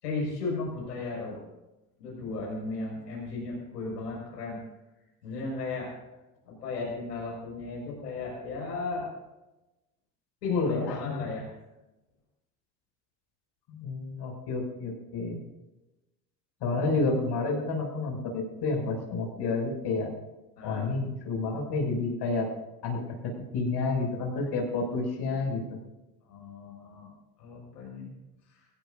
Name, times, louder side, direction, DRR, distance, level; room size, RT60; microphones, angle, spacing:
voice 1, 0.0-1.5 2.0-4.6 5.2-5.9 6.4-9.1 10.4-11.5 20.6-20.9 26.2-27.1 27.4-28.1 28.5-28.6, left 3 dB, 80° left, -3 dB, 6.0 m, -35 dB
voice 2, 10.5-11.1 13.7-15.4 16.6-20.1 20.6-22.5 22.8-25.6, left 3 dB, 55° left, 1 dB, 6.7 m, -30 dB
24.0 x 16.5 x 2.7 m, 1.0 s
hypercardioid pair, 65°, 47 cm